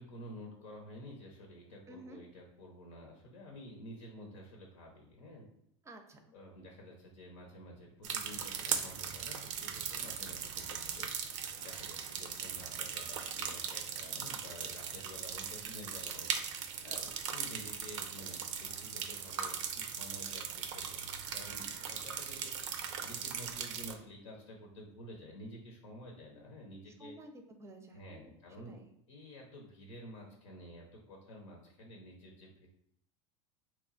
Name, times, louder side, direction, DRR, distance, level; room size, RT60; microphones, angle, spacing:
voice 1, 0.0-5.5 6.3-27.1 27.9-28.8 29.1-32.7, left 1 dB, 85° left, 0 dB, 0.9 m, -51 dB
voice 2, 1.9-2.2 5.8-6.3 26.9-28.9, right 1 dB, 20° right, 5 dB, 0.5 m, -53 dB
sound 1, 8.0-23.9, right 7 dB, 80° right, 0.5 m, -39 dB
3.0 x 2.3 x 3.9 m, 0.73 s
hypercardioid pair, 105°, 16 cm